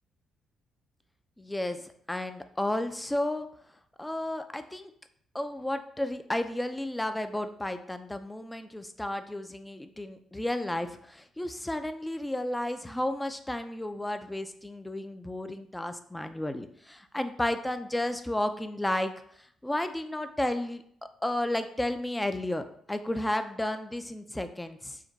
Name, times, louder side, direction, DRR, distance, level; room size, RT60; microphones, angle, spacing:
voice 1, 1.4-3.5 4.0-4.9 5.3-19.1 19.4-20.8 21.2-25.0, left 1 dB, 10° left, 9 dB, 0.4 m, -32 dB
4.9 x 2.2 x 3.9 m, 0.66 s
cardioid pair, 90°, 0 cm